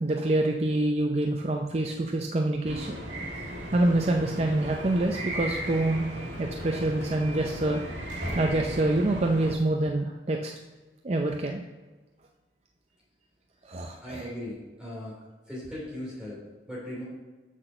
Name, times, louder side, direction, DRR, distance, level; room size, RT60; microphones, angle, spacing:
voice 1, 0.0-3.0 3.7-6.0 6.4-7.8 8.3-10.5 11.0-11.6 13.7-14.2, right 2 dB, 35° right, 2 dB, 0.5 m, -26 dB
sound 1, 2.7-9.5, equal, 80° right, 2.0 m, -36 dB
voice 2, 14.0-15.2 15.5-17.0, left 1 dB, 5° right, -6 dB, 2.9 m, -38 dB
6.3 x 6.0 x 6.6 m, 1.3 s
head